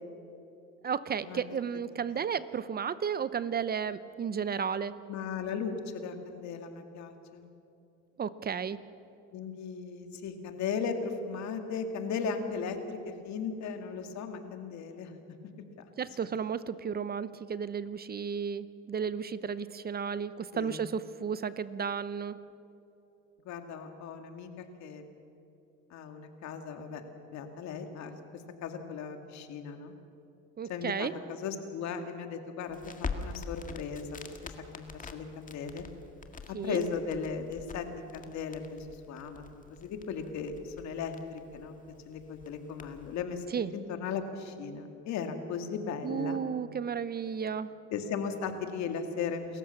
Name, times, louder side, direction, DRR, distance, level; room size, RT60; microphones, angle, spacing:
voice 1, 0.8-4.9 8.2-8.8 16.0-22.4 30.6-31.1 36.5-36.8 43.5-43.7 46.0-47.7, right 7 dB, 30° right, 15 dB, 0.7 m, -33 dB
voice 2, 5.1-7.5 9.3-15.1 20.5-20.8 23.4-25.1 25.9-27.0 27.3-28.1 28.6-29.9 30.7-32.8 33.2-35.9 36.6-37.9 38.1-41.8 42.1-43.4 43.7-46.4 47.9-49.6, left 6 dB, 65° left, 6 dB, 2.3 m, -37 dB
Crackle, 32.7-43.2, left 4 dB, 25° left, 1.9 m, -44 dB
28.5 x 14.5 x 7.2 m, 2.8 s
cardioid pair, 100°, 30 cm